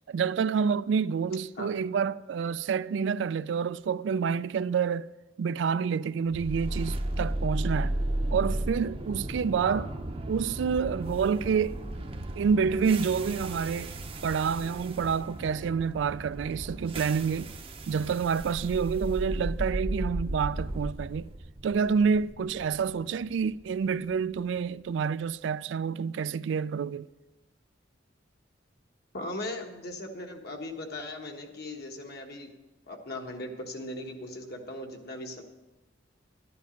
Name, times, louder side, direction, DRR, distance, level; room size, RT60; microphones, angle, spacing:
voice 1, 0.0-5.1 5.4-8.0 8.3-9.9 10.3-11.8 12.4-13.9 14.2-17.5 17.9-21.3 21.6-27.1, right 6 dB, 70° right, 0.3 m, -28 dB
sound 1, 6.3-24.4, right 1 dB, 30° right, 0.7 m, -35 dB
voice 2, 29.1-32.5 32.9-35.4, left 1 dB, 55° left, 1.4 m, -38 dB
11.5 x 10.5 x 5.2 m
head